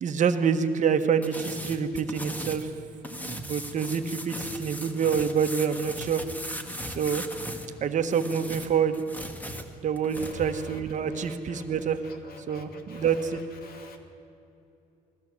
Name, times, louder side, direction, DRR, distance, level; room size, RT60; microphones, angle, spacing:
voice 1, 0.0-2.7 3.1-6.2 6.9-7.2 7.8-9.0 9.8-12.0 12.5-13.4, right 7 dB, 45° right, 1.4 m, -27 dB
sound 1, 1.2-2.7 3.0-7.7 8.0-10.3, equal, 10° left, 1.8 m, -38 dB
voice 2, 13.6-14.0, left 3 dB, 65° left, 2.6 m, -46 dB
21.0 x 16.0 x 7.8 m
cardioid pair, 110°, 17 cm